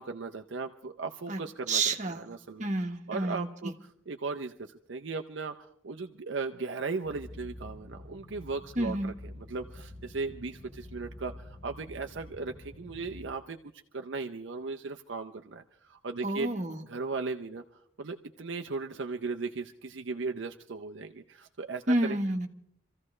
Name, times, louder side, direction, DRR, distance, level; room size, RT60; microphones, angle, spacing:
voice 1, 0.0-2.7 3.1-3.7 4.1-13.6 13.9-16.5 16.8-22.2, right 4 dB, 65° right, 4 dB, 0.7 m, -37 dB
voice 2, 1.7-2.3 2.6-3.7 8.8-9.1 16.2-16.8 21.9-22.5, right 2 dB, 40° right, 3 dB, 1.3 m, -30 dB
sound 1, 7.0-13.2, left 1 dB, 40° left, 6.5 m, -47 dB
27.0 x 14.5 x 3.2 m, 0.69 s
head